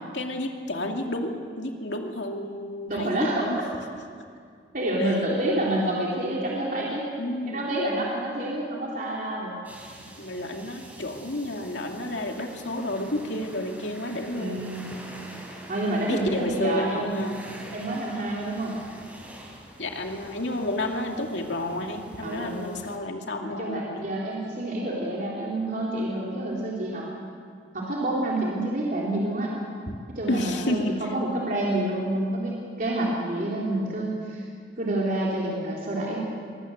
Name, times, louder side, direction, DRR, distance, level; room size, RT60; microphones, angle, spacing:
voice 1, 0.1-3.6 7.2-7.6 8.4-8.5 10.2-14.6 16.1-17.4 19.8-24.1 30.3-30.9, left 1 dB, 75° left, 2 dB, 2.5 m, -31 dB
voice 2, 2.9-3.5 4.7-7.1 7.5-9.5 14.3-14.9 15.7-17.3 17.7-18.8 22.2-22.8 23.4-27.1 27.7-29.7 30.2-34.5 34.8-36.2, right 1 dB, 50° right, -4 dB, 3.6 m, -28 dB
sound 1, 9.6-23.0, right 1 dB, 10° right, 3.6 m, -45 dB
23.5 x 19.5 x 8.1 m, 2.2 s
head